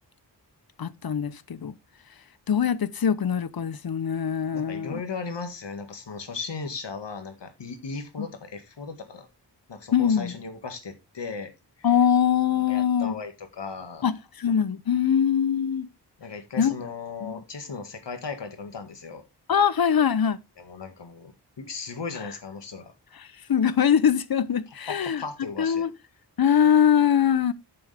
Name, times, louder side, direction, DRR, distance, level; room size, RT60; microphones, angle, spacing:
voice 1, 0.8-1.7 2.5-5.0 8.2-8.3 9.9-10.3 11.8-13.2 14.0-15.9 16.6-16.7 17.2-17.4 19.5-20.4 23.2-25.2 25.6-25.9 26.4-27.5, left 8 dB, 60° left, 0.7 m, -22 dB
voice 2, 4.5-9.3 9.7-11.5 11.8-11.9 12.7-14.1 16.2-19.2 20.6-22.9 24.9-25.9, left 4 dB, 85° left, 1.8 m, -37 dB
9.5 x 6.8 x 3.3 m
wide cardioid pair, 90°, 41 cm